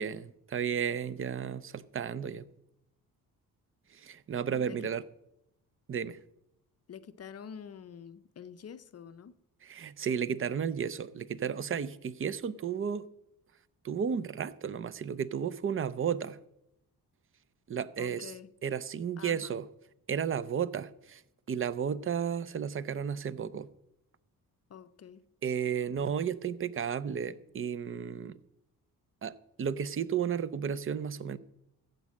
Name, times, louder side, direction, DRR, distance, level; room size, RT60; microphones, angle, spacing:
voice 1, 0.0-2.4 3.9-5.0 5.9-6.2 9.6-13.1 13.8-16.4 17.7-18.3 18.6-19.7 20.1-21.2 21.5-23.7 25.4-28.4 29.2-31.4, right 7 dB, 35° right, 0.5 m, -33 dB
voice 2, 4.5-4.9 6.9-9.4 18.0-18.5 19.2-19.6 24.7-25.2, left 7 dB, 40° left, 0.6 m, -47 dB
14.5 x 5.3 x 8.3 m
cardioid pair, 130°, 38 cm